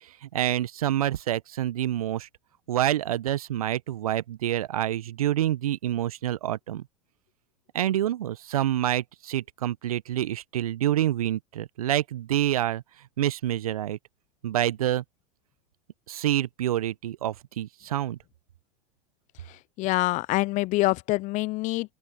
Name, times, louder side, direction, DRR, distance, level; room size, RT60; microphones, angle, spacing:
voice 1, 0.0-2.3 2.7-6.8 7.7-12.8 13.2-14.0 14.4-15.0 16.1-18.2, right 12 dB, 70° right, 1.1 m, -27 dB
voice 2, 19.8-21.9, left 20 dB, 40° left, 0.7 m, -25 dB
open air
hypercardioid pair, 90°, 19 cm